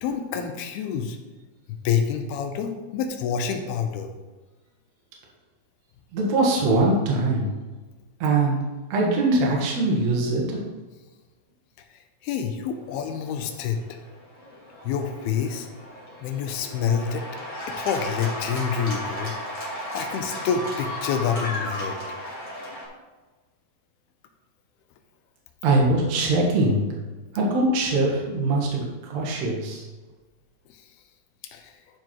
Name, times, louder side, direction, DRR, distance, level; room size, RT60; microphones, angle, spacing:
voice 1, 0.0-1.2 1.8-4.1 11.9-14.0 14.8-15.7 16.2-17.3 17.7-19.4 19.9-22.0 30.7-30.8 31.5-31.7, left 7 dB, 90° left, 6 dB, 2.8 m, -27 dB
voice 2, 6.1-7.5 8.2-8.6 8.9-10.6 25.6-26.9 27.3-29.9, right 2 dB, 55° right, -2 dB, 2.4 m, -22 dB
Cheering / Applause, 13.2-22.9, left 1 dB, 25° left, 2.4 m, -35 dB
11.5 x 4.7 x 4.5 m, 1.3 s
omnidirectional pair, 4.4 m